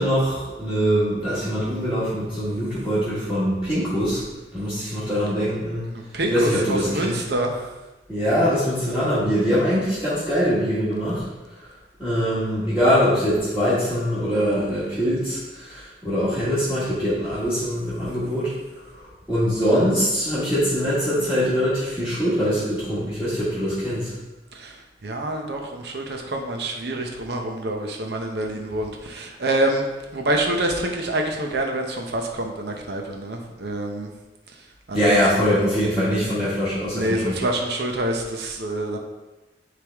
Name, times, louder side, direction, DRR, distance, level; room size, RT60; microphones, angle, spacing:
voice 1, 0.0-4.2 4.5-5.9 6.3-7.2 8.1-11.2 12.0-18.5 18.8-19.0 19.3-24.1 34.9-37.4, equal, 5° right, -14 dB, 1.7 m, -23 dB
voice 2, 5.9-7.7 24.5-29.8 30.1-34.1 34.9-35.7 36.9-39.0, right 1 dB, 65° right, 2 dB, 0.7 m, -27 dB
9.5 x 3.4 x 3.5 m, 1.1 s
head